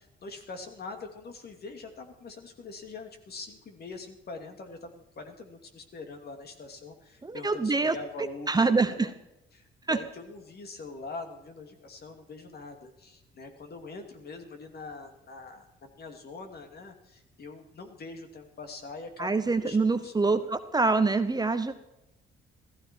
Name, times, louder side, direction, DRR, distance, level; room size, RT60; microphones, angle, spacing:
voice 1, 0.0-9.1 9.5-20.5, left 3 dB, 55° left, 5 dB, 2.7 m, -43 dB
voice 2, 7.2-7.9 8.5-9.1 9.9-10.0 19.2-21.7, right 3 dB, 20° right, 10 dB, 0.9 m, -25 dB
15.5 x 15.0 x 4.6 m, 0.88 s
cardioid pair, 90°, 20 cm